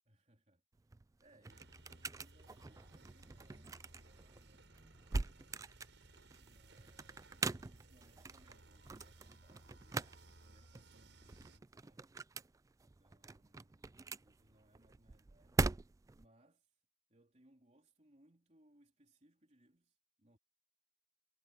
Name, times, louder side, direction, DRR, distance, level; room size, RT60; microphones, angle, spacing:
voice 1, 0.1-0.6 1.2-5.3 6.4-12.1 12.8-15.6 16.1-16.8 17.1-20.4, right 1 dB, 40° right, 3.8 m, -70 dB
sound 1, 0.7-16.3, right 3 dB, 20° right, 0.3 m, -43 dB
sound 2, 1.5-11.6, right 2 dB, 85° right, 5.1 m, -61 dB
head